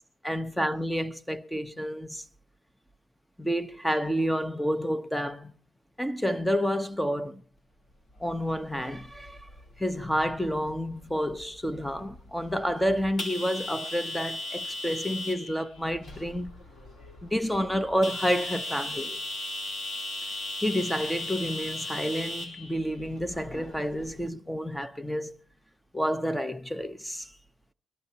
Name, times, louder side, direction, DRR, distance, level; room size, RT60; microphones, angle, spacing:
voice 1, 0.2-2.2 3.4-5.5 6.0-7.4 8.2-9.5 9.8-16.5 17.2-19.2 20.6-25.3 25.9-27.3, equal, 5° left, 0.8 m, -29 dB
sound 1, 8.2-24.3, left 2 dB, 65° left, 3.9 m, -38 dB
22.5 x 12.5 x 2.9 m
cardioid pair, 90°, 0 cm